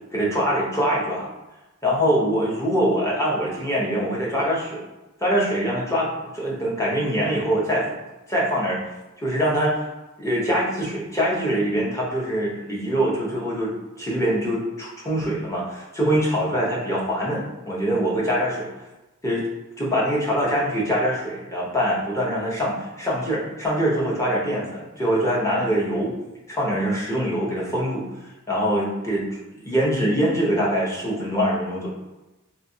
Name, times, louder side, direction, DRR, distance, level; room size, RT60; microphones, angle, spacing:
voice 1, 0.1-1.3 1.8-4.8 5.2-6.1 6.3-8.0 8.3-8.8 9.2-9.8 10.2-18.7 19.2-19.5 19.8-26.1 26.5-28.0 28.5-29.2 29.6-31.9, equal, 15° left, -5 dB, 0.7 m, -23 dB
3.1 x 2.7 x 2.7 m, 1.0 s
head